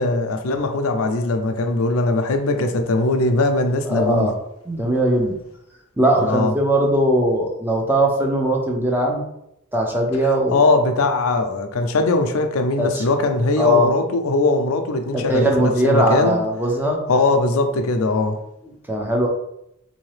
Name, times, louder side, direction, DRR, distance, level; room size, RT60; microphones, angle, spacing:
voice 1, 0.0-4.3 6.2-6.5 10.5-16.4 17.1-18.4, left 2 dB, 90° left, 0.5 m, -20 dB
voice 2, 3.8-4.3 4.7-5.3 6.0-9.2 9.7-10.6 12.8-13.0 13.6-13.9 15.1-17.0 18.9-19.3, right 1 dB, 10° right, 0.5 m, -19 dB
3.8 x 2.7 x 3.2 m
head